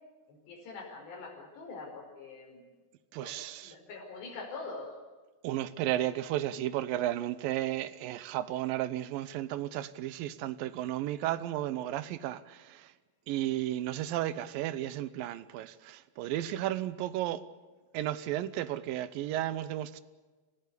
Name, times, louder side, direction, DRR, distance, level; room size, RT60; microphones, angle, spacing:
voice 1, 0.3-2.6 3.2-5.0, left 3 dB, 75° left, 7.4 m, -44 dB
voice 2, 3.1-3.7 5.4-12.9 13.3-17.4 17.9-20.0, right 13 dB, 75° right, 2.1 m, -33 dB
30.0 x 15.5 x 8.5 m
omnidirectional pair, 5.0 m